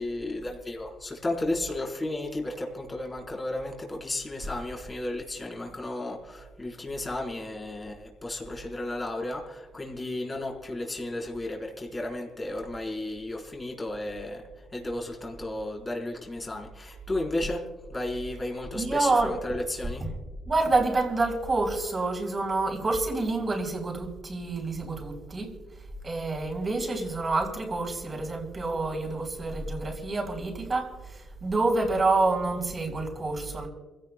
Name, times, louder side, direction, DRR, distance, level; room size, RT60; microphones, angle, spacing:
voice 1, 0.0-14.4 14.7-17.6 17.9-20.0, left 1 dB, 20° left, 4.6 m, -33 dB
voice 2, 18.7-19.3 20.5-25.5 26.0-33.7, right 3 dB, 30° right, 4.6 m, -28 dB
28.0 x 17.0 x 2.4 m
cardioid pair, 90°, 0 cm